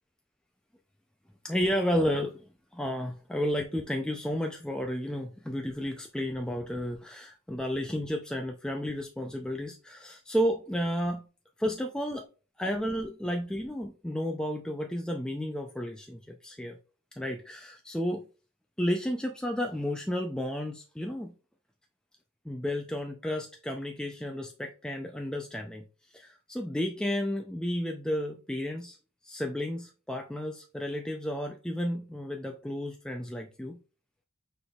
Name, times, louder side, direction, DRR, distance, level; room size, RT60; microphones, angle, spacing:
voice 1, 1.4-2.4 2.7-11.2 11.6-12.3 12.6-16.8 17.1-18.2 18.8-21.3 22.5-25.8 26.1-29.0 29.2-33.8, equal, 5° left, 2 dB, 0.3 m, -32 dB
6.0 x 3.4 x 2.3 m, 0.34 s
head